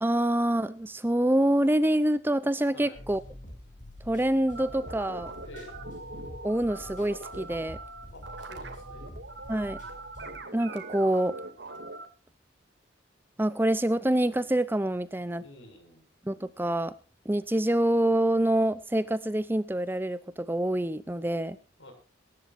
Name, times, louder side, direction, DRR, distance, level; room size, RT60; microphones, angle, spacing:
voice 1, 0.0-3.2 4.1-5.3 6.4-7.8 9.5-9.8 10.5-11.4 13.4-15.4 16.3-16.9 17.3-21.6, right 1 dB, 10° right, 15 dB, 0.5 m, -26 dB
voice 2, 2.7-3.0 5.4-5.8 8.1-9.2 15.4-16.0 21.8-21.9, left 1 dB, 75° left, 5 dB, 5.8 m, -49 dB
sound 1, 2.9-10.4, left 1 dB, 40° left, 5.5 m, -47 dB
sound 2, 4.5-12.1, right 2 dB, 55° right, 2.4 m, -42 dB
23.0 x 11.5 x 2.5 m, 0.35 s
head